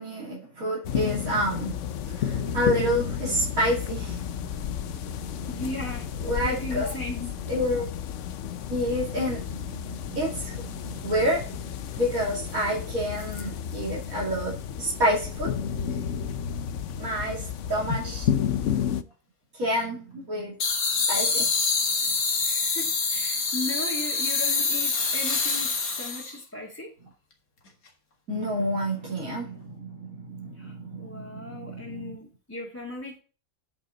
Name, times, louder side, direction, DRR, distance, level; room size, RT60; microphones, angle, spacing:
voice 1, 0.0-1.7 2.1-5.5 6.2-6.9 7.5-7.9 8.7-11.7 12.0-15.5 17.0-17.4 17.7-18.3 19.6-20.5 21.1-21.5 28.3-32.1, equal, 80° right, 3.2 m, -29 dB
sound 1, 0.8-19.0, left 9 dB, 65° left, 0.9 m, -32 dB
voice 2, 5.5-6.1 6.4-7.3 18.0-18.3 22.4-26.9 30.6-33.2, left 1 dB, 10° left, 2.2 m, -37 dB
sound 2, 20.6-26.4, left 4 dB, 80° left, 2.3 m, -26 dB
9.9 x 5.6 x 4.0 m
omnidirectional pair, 1.5 m